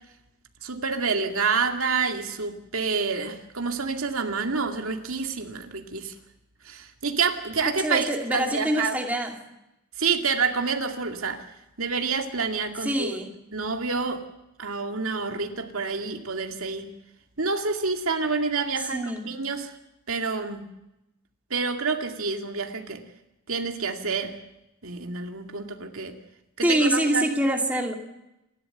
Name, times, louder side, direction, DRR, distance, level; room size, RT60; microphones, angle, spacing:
voice 1, 0.6-6.1 6.6-9.0 10.0-11.4 11.8-13.2 13.5-14.2 14.6-16.9 17.4-19.7 20.1-20.6 21.5-23.0 23.5-24.4 24.8-26.2 26.6-27.3, right 4 dB, 75° right, 4 dB, 2.3 m, -28 dB
voice 2, 7.8-9.3 12.8-13.3 18.9-19.3 26.6-27.9, right 1 dB, 5° right, 2 dB, 2.5 m, -25 dB
28.5 x 12.5 x 7.9 m, 0.90 s
head